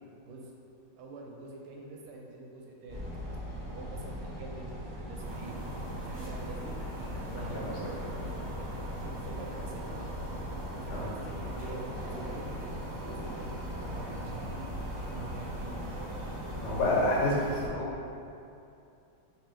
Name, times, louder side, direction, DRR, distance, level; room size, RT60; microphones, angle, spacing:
voice 1, 1.0-3.0 3.5-5.6 6.0-10.0 10.6-15.8, right 2 dB, 85° right, -1 dB, 1.5 m, -45 dB
sound 1, 2.9-17.1, equal, 15° right, 0.9 m, -40 dB
sound 2, 5.2-17.7, right 1 dB, 55° right, 1.2 m, -42 dB
voice 2, 16.6-18.0, left 1 dB, 85° left, -5 dB, 1.8 m, -28 dB
3.4 x 3.2 x 4.4 m, 2.6 s
omnidirectional pair, 2.4 m